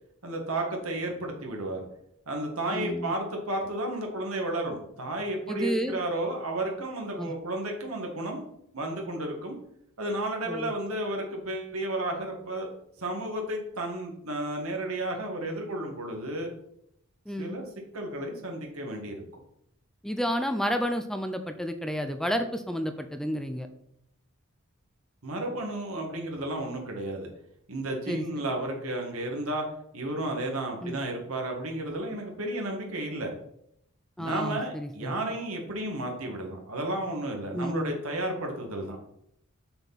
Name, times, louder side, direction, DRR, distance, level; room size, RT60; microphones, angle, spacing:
voice 1, 0.2-1.8 2.3-8.5 8.7-9.6 10.0-12.7 13.0-16.5 17.4-17.6 17.9-19.2 25.2-27.3 27.7-29.7 29.9-33.3 34.2-39.0, right 1 dB, 85° right, 1 dB, 1.8 m, -32 dB
voice 2, 2.7-3.2 5.5-6.0 7.2-7.3 10.5-10.7 17.3-17.6 20.0-23.7 28.1-28.2 30.8-31.0 34.2-35.1 37.5-37.9, equal, ahead, 7 dB, 0.4 m, -31 dB
6.7 x 6.4 x 4.1 m, 0.75 s
head